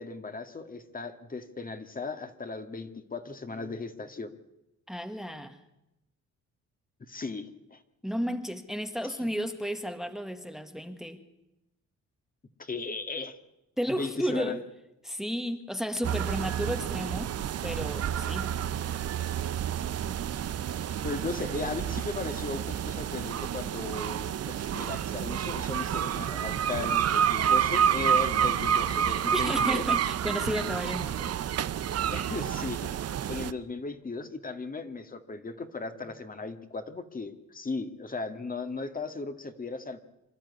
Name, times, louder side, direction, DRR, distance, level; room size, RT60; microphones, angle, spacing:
voice 1, 0.0-4.3 7.1-7.8 9.0-9.1 12.6-13.4 13.9-14.6 21.0-29.9 32.1-32.9 33.3-40.0, left 3 dB, 30° left, 8 dB, 2.0 m, -37 dB
voice 2, 4.9-5.6 8.0-11.2 13.8-14.6 15.0-17.4 17.6-18.5 29.3-31.3, equal, ahead, 8 dB, 1.7 m, -33 dB
sound 1, 16.0-33.5, right 9 dB, 55° right, 0.9 m, -29 dB
26.0 x 12.0 x 9.6 m, 0.92 s
cardioid pair, 90°, 30 cm